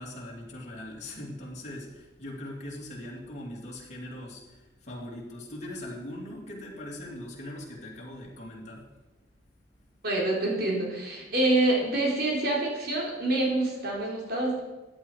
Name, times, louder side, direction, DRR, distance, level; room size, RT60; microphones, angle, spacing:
voice 1, 0.0-8.9, left 1 dB, 40° left, -4 dB, 3.0 m, -40 dB
voice 2, 10.0-14.6, right 2 dB, 55° right, -2 dB, 3.7 m, -26 dB
14.5 x 9.5 x 4.9 m, 1.1 s
head